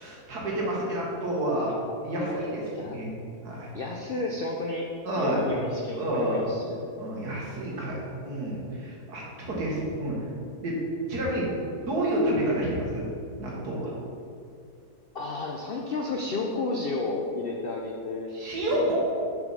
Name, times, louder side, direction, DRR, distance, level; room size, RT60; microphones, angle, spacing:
voice 1, 0.0-1.8 2.0-3.1 3.4-3.7 5.0-5.4 5.9-6.4 6.9-10.2 10.6-10.8 11.1-11.5 11.9-13.0 13.4-13.9 18.3-19.0, right 1 dB, 75° right, -4 dB, 2.1 m, -29 dB
voice 2, 2.2-3.0 3.7-4.9 5.2-6.9 15.1-18.3 18.7-18.8, left 3 dB, 80° left, 1 dB, 0.5 m, -32 dB
6.6 x 4.6 x 5.4 m, 2.5 s
omnidirectional pair, 1.7 m